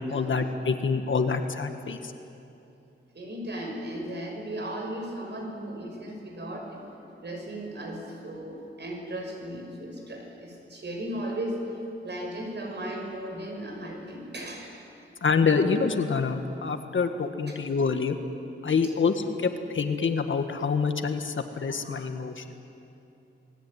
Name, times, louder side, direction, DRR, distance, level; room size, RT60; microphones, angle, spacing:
voice 1, 0.1-2.1 15.2-18.2 18.6-22.4, left 5 dB, 70° left, 6 dB, 1.8 m, -26 dB
voice 2, 3.1-6.8 7.2-11.6 12.0-14.7, right 1 dB, 55° right, 1 dB, 6.1 m, -36 dB
29.0 x 20.0 x 9.5 m, 2.8 s
wide cardioid pair, 120°, 21 cm